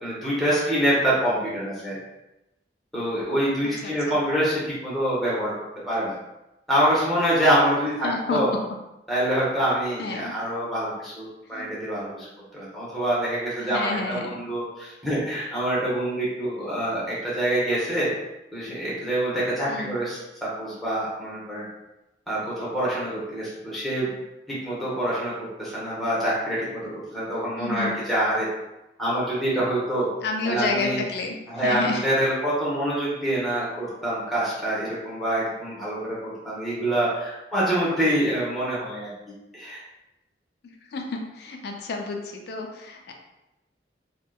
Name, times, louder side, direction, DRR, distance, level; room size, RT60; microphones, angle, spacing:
voice 1, 0.0-2.0 2.9-5.5 5.8-6.2 6.7-8.5 9.1-12.3 12.5-18.1 18.5-21.7 22.3-24.2 24.5-28.5 29.0-30.1 30.4-31.0 31.5-39.8, right 1 dB, ahead, -8 dB, 0.8 m, -26 dB
voice 2, 3.8-4.2 8.0-8.4 10.0-10.3 11.5-11.7 13.6-14.3 19.7-20.0 27.6-28.0 30.2-32.0 40.6-43.1, left 3 dB, 60° left, 2 dB, 0.4 m, -30 dB
2.6 x 2.1 x 2.2 m, 0.95 s
head